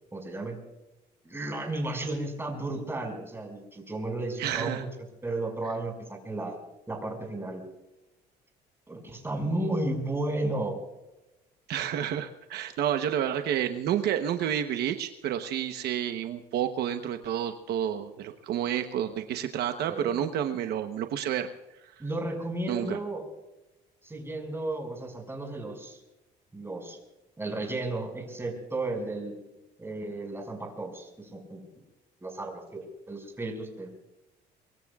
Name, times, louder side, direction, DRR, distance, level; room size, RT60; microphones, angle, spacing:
voice 1, 0.1-0.6 1.2-4.9 5.2-6.6 6.9-7.6 8.9-10.8 19.9-20.2 22.0-23.2 24.0-26.0 26.5-27.0 27.4-29.3 29.8-31.6 32.2-33.9, right 2 dB, 15° right, 2 dB, 5.8 m, -33 dB
voice 2, 4.4-4.9 11.7-21.5 22.7-23.0, right 10 dB, 70° right, 7 dB, 1.0 m, -30 dB
24.5 x 22.5 x 2.4 m, 0.98 s
cardioid pair, 110°, 17 cm